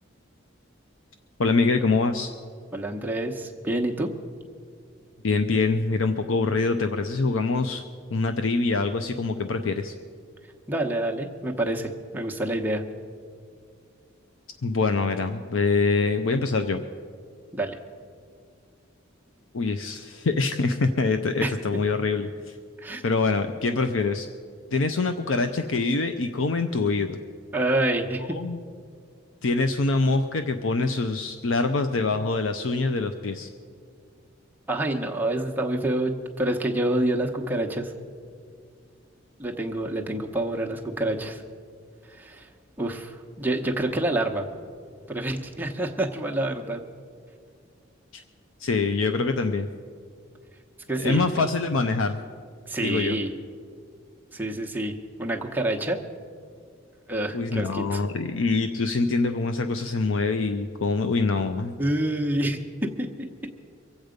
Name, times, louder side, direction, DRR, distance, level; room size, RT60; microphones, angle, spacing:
voice 1, 1.4-2.3 5.2-7.8 8.1-9.9 14.6-16.8 19.5-22.6 23.0-24.3 24.7-27.2 28.3-28.6 29.4-33.5 48.1-48.2 48.6-49.7 51.0-52.2 52.8-53.2 57.3-61.8, left 3 dB, 75° left, 8 dB, 0.6 m, -24 dB
voice 2, 2.7-4.1 10.7-12.8 17.5-17.8 21.4-21.5 22.8-23.0 27.5-28.4 34.7-37.9 39.4-41.4 42.1-42.5 42.8-44.5 45.1-46.8 50.9-51.2 52.7-53.3 54.3-54.9 55.2-56.0 57.1-58.0 61.8-63.3, right 1 dB, 10° right, 1 dB, 0.9 m, -27 dB
24.0 x 8.0 x 5.1 m, 2.2 s
head